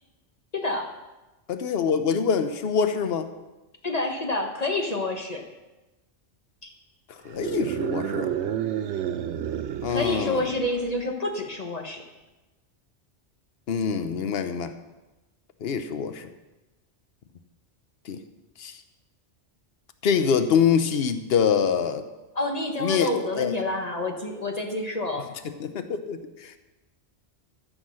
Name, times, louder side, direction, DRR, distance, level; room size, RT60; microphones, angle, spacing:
voice 1, 0.5-0.9 3.8-5.4 6.6-6.7 9.9-12.0 22.3-25.3, left 2 dB, 35° left, 2 dB, 1.2 m, -28 dB
voice 2, 1.5-3.3 7.1-8.3 9.8-10.5 13.7-14.7 15.6-16.3 18.1-18.2 18.6-18.8 20.0-22.0 22.8-23.5 25.6-26.6, left 7 dB, 65° left, 10 dB, 1.0 m, -25 dB
sound 1, 7.3-10.9, right 9 dB, 90° right, 1.0 m, -30 dB
14.0 x 6.3 x 6.3 m, 1.1 s
omnidirectional pair, 1.1 m